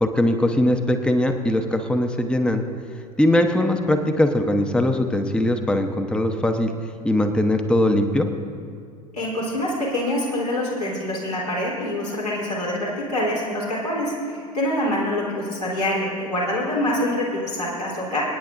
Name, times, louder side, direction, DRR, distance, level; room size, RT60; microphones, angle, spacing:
voice 1, 0.0-2.6 3.2-6.7 7.0-8.3, left 1 dB, 5° left, 6 dB, 0.8 m, -20 dB
voice 2, 9.1-18.2, left 1 dB, 85° left, -8 dB, 3.3 m, -25 dB
28.0 x 9.4 x 2.5 m, 2.3 s
figure-of-eight pair, 75°, 19 cm